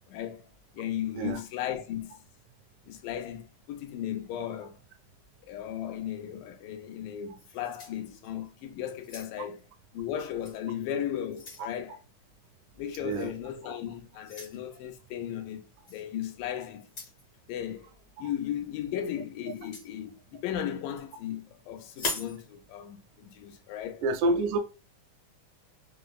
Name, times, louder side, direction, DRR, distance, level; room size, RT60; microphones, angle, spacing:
voice 1, 0.1-0.4 0.7-2.1 2.9-4.8 5.5-9.6 9.9-12.0 12.8-16.9 17.5-24.0 24.3-24.5, left 10 dB, 90° left, 2.3 m, -36 dB
sound 1, 7.4-8.5 8.9-9.6 10.4-10.6 11.0-11.7 13.1-13.3 14.2-14.6 15.9-16.0 16.8-17.2 19.5-19.9 21.9-22.4, left 2 dB, 65° left, 0.9 m, -39 dB
voice 2, 24.0-24.6, right 2 dB, 80° right, 2.0 m, -27 dB
5.5 x 2.1 x 2.3 m
omnidirectional pair, 3.8 m